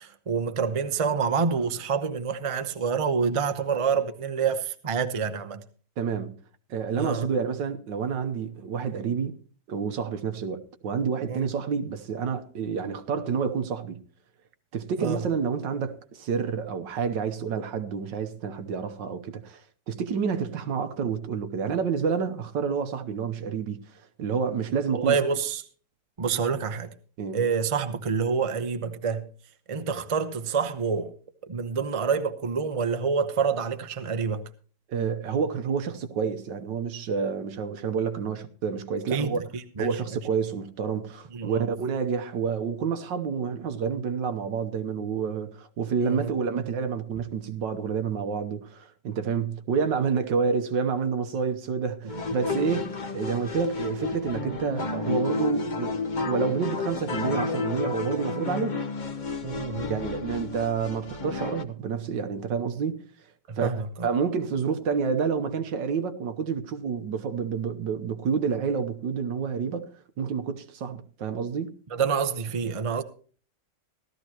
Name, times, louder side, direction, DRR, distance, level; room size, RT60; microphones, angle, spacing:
voice 1, 0.0-5.6 7.0-7.3 11.3-11.5 15.0-15.2 24.9-25.6 26.2-26.9 27.3-29.3 29.7-31.1 31.5-34.5 39.1-39.9 41.3-41.7 46.0-46.3 59.4-59.9 63.5-64.1 71.9-73.0, right 6 dB, 35° right, 0.5 m, -27 dB
voice 2, 6.0-6.3 6.7-9.4 9.7-14.0 14.7-19.6 19.9-23.8 24.2-25.2 27.2-27.4 34.9-39.4 39.8-56.0 56.2-58.8 59.9-63.0 63.6-71.7, right 6 dB, 75° right, 1.7 m, -29 dB
sound 1, 52.1-61.6, left 3 dB, 40° left, 0.7 m, -31 dB
16.5 x 13.0 x 3.0 m
omnidirectional pair, 2.0 m